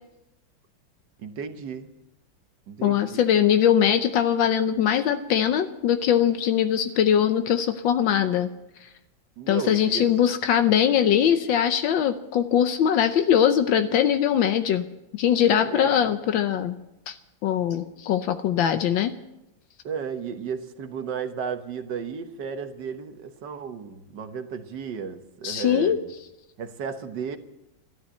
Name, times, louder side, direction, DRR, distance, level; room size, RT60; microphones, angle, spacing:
voice 1, 1.2-1.9 2.7-3.2 9.4-10.1 15.6-15.9 19.8-26.1 26.6-27.4, right 6 dB, 65° right, 8 dB, 1.7 m, -34 dB
voice 2, 2.8-8.5 9.5-14.9 15.2-16.8 17.1-17.2 17.4-19.1 25.4-26.0, left 9 dB, 80° left, 9 dB, 1.5 m, -21 dB
13.0 x 12.5 x 7.7 m, 0.90 s
omnidirectional pair, 2.1 m